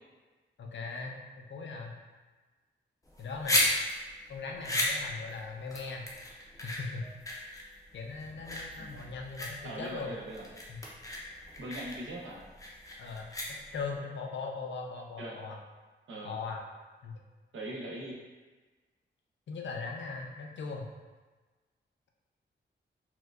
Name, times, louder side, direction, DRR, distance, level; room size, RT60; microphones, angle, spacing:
voice 1, 0.6-2.0 3.2-3.7 4.3-6.1 6.6-7.1 7.9-10.2 10.7-10.8 13.0-13.3 13.7-15.6 16.2-16.7 17.0-17.1 19.5-20.9, left 4 dB, 70° left, 1 dB, 0.5 m, -39 dB
sound 1, 3.1-14.0, left 1 dB, 15° left, 0.5 m, -34 dB
voice 2, 9.6-10.5 11.6-12.4 15.2-15.4 16.1-16.4 17.5-18.2, right 1 dB, 90° right, -4 dB, 0.8 m, -41 dB
4.4 x 2.2 x 2.4 m, 1.3 s
wide cardioid pair, 125°, 20 cm